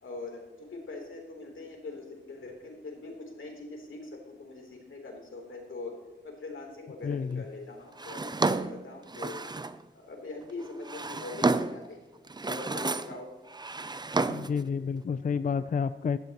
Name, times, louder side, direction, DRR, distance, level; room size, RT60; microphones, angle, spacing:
voice 1, 0.0-5.9 6.2-9.4 9.9-12.0 12.4-13.3, left 3 dB, 90° left, 1 dB, 3.4 m, -42 dB
voice 2, 7.0-7.4 14.3-16.2, left 6 dB, 45° left, 13 dB, 0.4 m, -30 dB
Drawer open or close, 8.0-9.8 10.6-11.9 12.3-13.2 13.5-14.6, right 3 dB, 20° right, 0.5 m, -30 dB
17.5 x 13.0 x 3.0 m, 1.1 s
wide cardioid pair, 90°, 20 cm